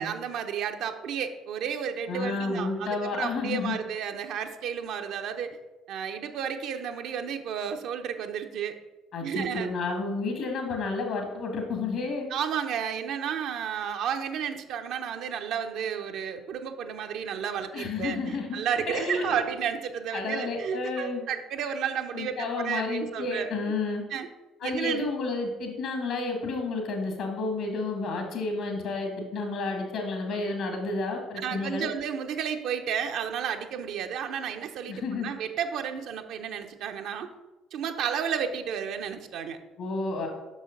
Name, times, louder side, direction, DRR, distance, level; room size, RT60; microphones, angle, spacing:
voice 1, 0.0-5.6 5.9-8.8 9.2-9.7 12.3-23.5 24.1-24.3 24.6-25.0 31.4-37.3 37.7-39.6, right 8 dB, 65° right, 6 dB, 0.7 m, -32 dB
voice 2, 2.1-3.8 9.1-12.3 17.7-19.4 20.1-21.2 22.1-24.0 24.6-31.9 34.9-35.3 39.8-40.3, left 3 dB, 65° left, 3 dB, 2.1 m, -31 dB
6.3 x 6.3 x 5.3 m, 1.1 s
hypercardioid pair, 55°, 0 cm